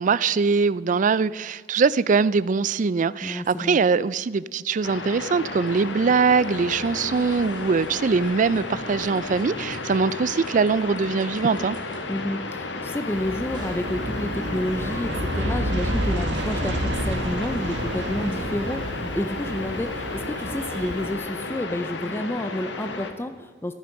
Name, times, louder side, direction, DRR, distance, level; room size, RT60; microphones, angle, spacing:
voice 1, 0.0-11.8, right 5 dB, 45° right, 0.4 m, -22 dB
voice 2, 3.2-3.8 12.1-23.7, left 1 dB, 15° left, 0.5 m, -30 dB
sound 1, 4.8-23.1, left 3 dB, 80° left, 1.4 m, -33 dB
sound 2, 5.4-15.6 16.2-17.7, right 1 dB, 25° right, 2.0 m, -49 dB
Aircraft, 13.1-21.1, right 1 dB, 85° right, 1.7 m, -29 dB
14.0 x 12.0 x 5.2 m
head